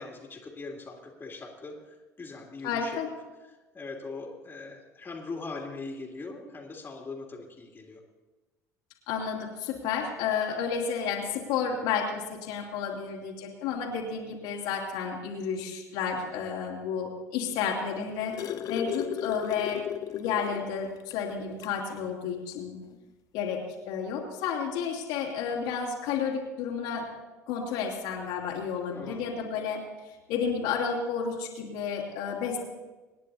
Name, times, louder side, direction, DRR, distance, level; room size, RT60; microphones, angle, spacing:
voice 1, 0.0-1.8 2.2-3.0 3.7-8.0 28.9-29.2, left 3 dB, 25° left, -1 dB, 2.8 m, -40 dB
voice 2, 2.6-3.1 9.1-18.4 18.7-22.8 23.3-27.0 27.5-29.8 30.3-32.6, left 6 dB, 60° left, -2 dB, 2.7 m, -31 dB
sound 1, 17.8-20.7 21.1-21.2 21.6-21.8 22.9-23.0, left 11 dB, 45° left, 0.6 m, -35 dB
27.0 x 10.0 x 2.8 m, 1.2 s
figure-of-eight pair, 65°, 8 cm